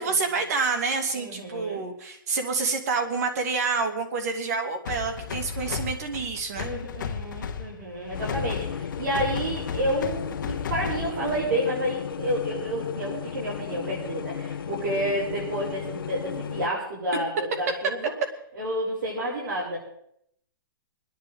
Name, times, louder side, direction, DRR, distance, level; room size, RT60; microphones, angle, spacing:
voice 1, 0.0-6.7, right 4 dB, 45° right, 5 dB, 2.2 m, -28 dB
voice 2, 1.1-1.8 6.5-18.1 18.6-19.8, right 1 dB, 60° right, -6 dB, 6.8 m, -30 dB
sound 1, 4.8-11.6, left 6 dB, 65° left, 1.3 m, -34 dB
sound 2, 8.1-16.7, left 8 dB, 90° left, 0.8 m, -35 dB
26.0 x 10.5 x 3.6 m, 0.72 s
hypercardioid pair, 170°, 11 cm